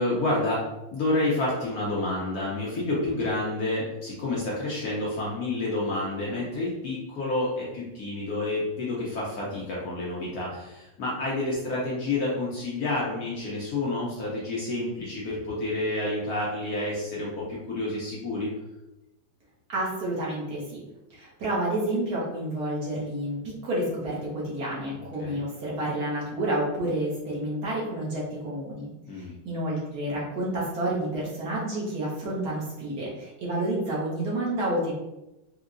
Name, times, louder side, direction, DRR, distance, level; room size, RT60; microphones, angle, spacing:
voice 1, 0.0-18.5 25.2-25.4 29.1-29.3, left 2 dB, 65° left, -5 dB, 1.0 m, -29 dB
voice 2, 19.7-20.8 21.1-28.9 29.4-34.9, right 1 dB, 60° right, -6 dB, 1.3 m, -29 dB
4.5 x 2.1 x 2.5 m, 0.96 s
omnidirectional pair, 2.1 m